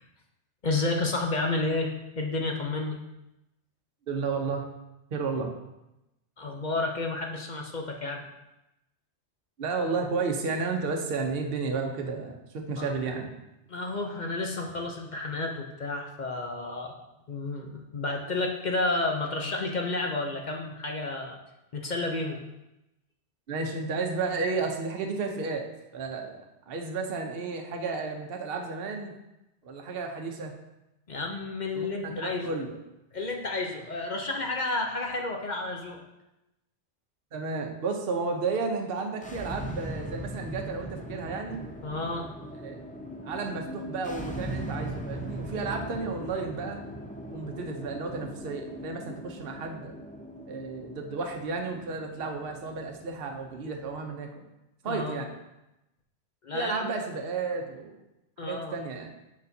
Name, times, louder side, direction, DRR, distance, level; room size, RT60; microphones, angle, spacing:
voice 1, 0.6-3.0 6.4-8.2 12.8-12.9 13.7-16.9 17.3-21.4 21.7-22.4 31.1-32.6 33.1-36.0 41.8-42.3 54.8-55.2 56.4-56.8 58.4-58.7, left 2 dB, 45° left, 2 dB, 0.7 m, -31 dB
voice 2, 4.1-4.6 5.1-5.5 9.6-13.3 23.5-25.7 25.9-29.1 29.6-30.5 31.7-32.8 37.3-41.6 42.6-42.8 43.2-46.8 47.3-49.9 50.5-54.4 54.8-55.3 56.5-57.9 58.4-59.1, right 4 dB, 55° right, 3 dB, 1.0 m, -32 dB
sound 1, 39.1-54.1, right 1 dB, 15° left, 0.3 m, -40 dB
7.2 x 6.6 x 2.7 m, 0.93 s
omnidirectional pair, 1.2 m